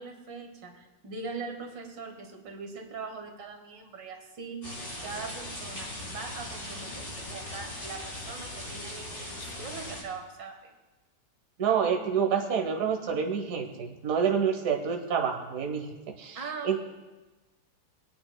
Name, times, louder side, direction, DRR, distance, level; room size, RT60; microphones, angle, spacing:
voice 1, 0.0-10.7 16.4-16.8, right 4 dB, 90° right, 4 dB, 1.9 m, -41 dB
sound 1, 4.6-10.0, left 1 dB, 30° left, 3.8 m, -39 dB
voice 2, 11.6-16.8, right 7 dB, 55° right, 2 dB, 1.4 m, -28 dB
24.0 x 8.6 x 2.2 m, 1.2 s
omnidirectional pair, 1.9 m